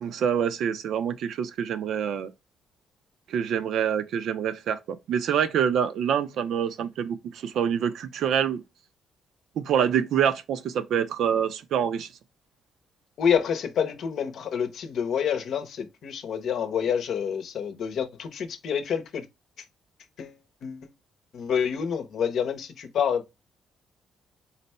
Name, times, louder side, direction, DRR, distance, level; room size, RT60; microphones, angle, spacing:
voice 1, 0.0-2.3 3.3-8.6 9.6-12.1, right 8 dB, 75° right, 0.6 m, -26 dB
voice 2, 13.2-19.2 20.2-20.3 20.6-20.9 21.3-23.3, left 7 dB, 70° left, 0.7 m, -28 dB
4.0 x 2.1 x 4.1 m
cardioid pair, 90°, 0 cm